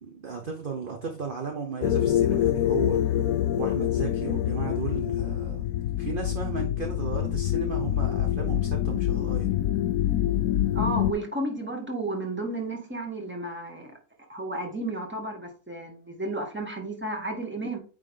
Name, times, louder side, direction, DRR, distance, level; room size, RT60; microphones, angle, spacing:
voice 1, 0.0-3.0 3.5-5.7 6.0-9.5, right 5 dB, 45° right, 1.0 m, -35 dB
sound 1, 1.8-11.1, left 11 dB, 75° left, 1.0 m, -26 dB
voice 2, 10.7-14.0 14.3-17.8, right 2 dB, 10° right, 1.6 m, -32 dB
8.9 x 3.5 x 3.7 m
omnidirectional pair, 1.5 m